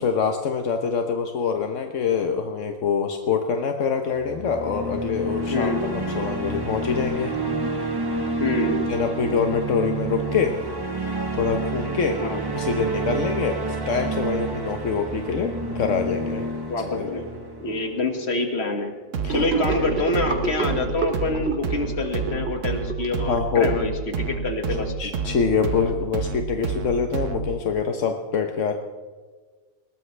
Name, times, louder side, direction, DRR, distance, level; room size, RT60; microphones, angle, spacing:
voice 1, 0.0-5.7 5.9-7.3 8.6-10.6 11.0-12.2 12.5-16.4 16.8-17.1 19.2-19.5 23.2-23.7 25.0-28.7, left 6 dB, 80° left, 5 dB, 1.3 m, -25 dB
sound 1, 4.1-18.3, right 3 dB, 20° right, 1.4 m, -29 dB
voice 2, 8.4-8.8 12.2-12.4 16.7-17.3 17.6-18.9 19.3-24.9, left 2 dB, 60° left, 4 dB, 2.1 m, -26 dB
sound 2, 19.1-27.6, right 5 dB, 90° right, 1.3 m, -29 dB
Gurgling / Sink (filling or washing), 19.3-23.8, right 4 dB, 60° right, 2.3 m, -29 dB
21.0 x 18.0 x 3.3 m, 1.4 s
omnidirectional pair, 1.3 m